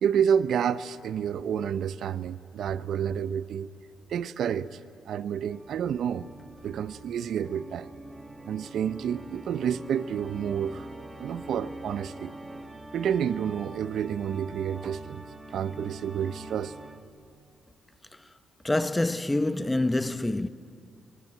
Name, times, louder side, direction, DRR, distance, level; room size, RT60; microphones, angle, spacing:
voice 1, 0.0-3.7 4.1-4.8 5.1-6.3 6.6-7.9 8.4-10.9 11.2-12.3 12.9-15.3 15.5-16.7, right 8 dB, 70° right, 0.7 m, -29 dB
Organ, 5.5-17.3, right 2 dB, 20° right, 1.8 m, -44 dB
voice 2, 18.6-20.5, left 2 dB, 10° left, 0.8 m, -26 dB
25.5 x 23.5 x 9.0 m
cardioid pair, 90°, 0 cm